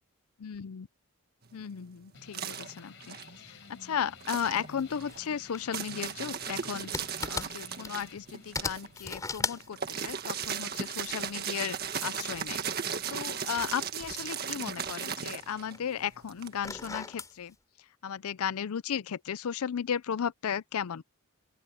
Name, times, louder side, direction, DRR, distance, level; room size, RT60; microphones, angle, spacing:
voice 1, 0.4-0.9 1.5-6.9 7.3-12.6 13.1-21.0, left 8 dB, 90° left, 0.5 m, -35 dB
sound 1, 1.4-3.8 4.2-16.9, right 7 dB, 45° right, 1.8 m, -37 dB
sound 2, 2.1-11.2, left 3 dB, 60° left, 4.2 m, -53 dB
sound 3, 4.7-5.2 5.5-8.3 8.5-11.7 12.3-14.4 14.7-15.9 16.4-17.3, left 3 dB, 15° left, 3.8 m, -39 dB
open air
head